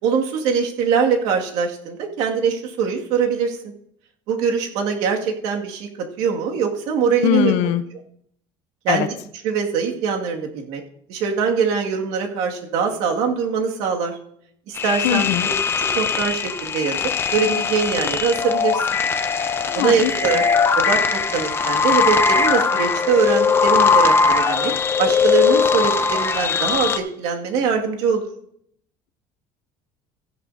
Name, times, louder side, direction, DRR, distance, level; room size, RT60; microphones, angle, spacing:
voice 1, 0.0-3.6 4.3-5.9 6.2-7.5 8.8-9.1 9.4-10.8 11.1-14.2 14.7-15.5 15.9-17.0 17.3-18.8 19.7-20.4 20.8-24.7 25.0-28.3, right 6 dB, 75° right, 1 dB, 2.1 m, -22 dB
voice 2, 7.2-7.8 8.9-9.1 15.0-15.5 19.7-20.4, left 13 dB, 75° left, 12 dB, 0.6 m, -21 dB
sound 1, 14.8-27.0, left 5 dB, 20° left, 0.7 m, -20 dB
15.5 x 10.5 x 2.7 m, 0.68 s
cardioid pair, 150°, 11 cm